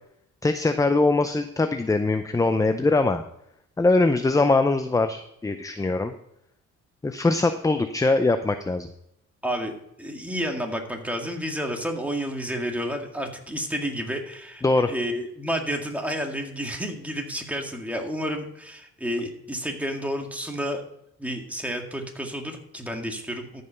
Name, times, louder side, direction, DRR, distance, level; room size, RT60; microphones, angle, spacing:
voice 1, 0.4-3.2 3.8-6.1 7.0-8.9 14.6-14.9, left 3 dB, 10° left, 9 dB, 0.5 m, -22 dB
voice 2, 9.4-20.8 21.2-23.6, equal, 5° right, 2 dB, 1.9 m, -30 dB
13.5 x 5.5 x 5.7 m, 0.77 s
cardioid pair, 90°, 30 cm